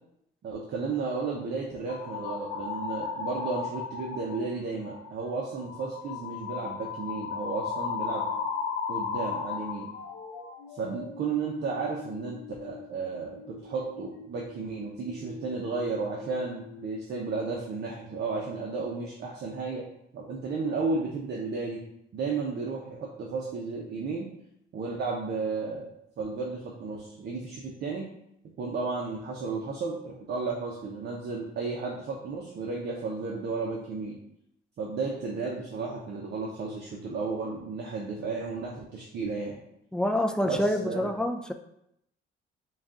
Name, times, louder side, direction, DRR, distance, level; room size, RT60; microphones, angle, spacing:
voice 1, 0.4-8.3 8.9-9.9 10.7-19.8 20.1-21.8 22.1-24.3 24.7-25.9 26.2-28.1 28.6-34.2 34.8-39.6 40.4-41.1, right 4 dB, 60° right, -2 dB, 0.7 m, -33 dB
sound 1, 1.9-4.5 4.8-5.1 5.6-16.9, left 5 dB, 85° left, 0.5 m, -37 dB
voice 2, 39.9-41.5, left 1 dB, 5° left, 5 dB, 0.3 m, -27 dB
4.0 x 2.4 x 3.7 m, 0.78 s
cardioid pair, 90°, 20 cm